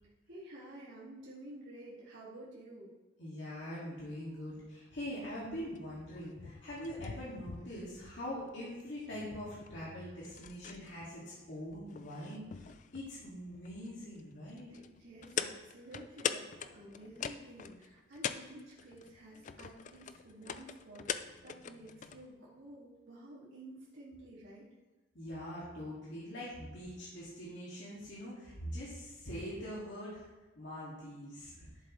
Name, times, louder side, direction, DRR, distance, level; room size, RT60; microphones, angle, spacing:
voice 1, 0.3-2.9 14.7-24.7, right 1 dB, 75° right, -8 dB, 2.2 m, -51 dB
voice 2, 3.2-12.7 12.9-14.7 25.1-30.3 30.6-31.7, equal, 65° left, -8 dB, 2.1 m, -43 dB
sound 1, 5.0-22.3, left 7 dB, 40° left, 0.3 m, -44 dB
11.0 x 7.4 x 3.1 m, 1.2 s
head